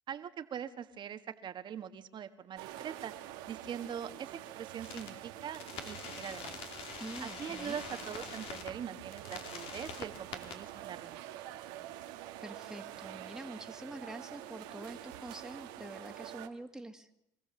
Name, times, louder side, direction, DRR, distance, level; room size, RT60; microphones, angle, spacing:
voice 1, 0.1-3.1 3.5-6.6 7.2-11.2, right 8 dB, 50° right, 10 dB, 1.5 m, -42 dB
sound 1, 2.6-16.5, right 13 dB, 85° right, 1.5 m, -47 dB
sound 2, 4.8-5.1 5.5-8.7 9.1-10.5, left 6 dB, 65° left, 2.7 m, -45 dB
voice 2, 7.0-7.8 12.4-17.1, right 1 dB, 5° right, 4 dB, 2.0 m, -46 dB
25.0 x 15.0 x 7.1 m, 0.84 s
supercardioid pair, 85°, 10 cm